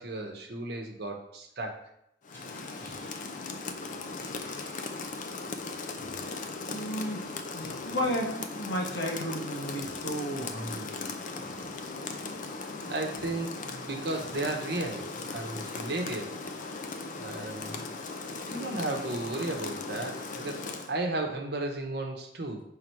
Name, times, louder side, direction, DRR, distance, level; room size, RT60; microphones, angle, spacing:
voice 1, 0.0-1.8 12.8-16.4 17.2-17.9 18.5-20.6 20.9-22.6, right 2 dB, 65° right, 3 dB, 1.0 m, -34 dB
Rain, 2.2-21.0, left 3 dB, 45° left, 0.5 m, -38 dB
sound 1, 2.3-3.5 4.2-5.0 6.0-6.4 7.6-8.3 9.8-10.2 11.4-12.1 13.1-13.5 14.1-15.5 16.6-17.3 18.1-18.2 19.2-19.4 20.1-20.2, left 1 dB, 10° left, 1.4 m, -53 dB
voice 2, 6.7-11.0, equal, 70° left, 0 dB, 1.2 m, -33 dB
5.8 x 3.6 x 4.6 m, 0.79 s
head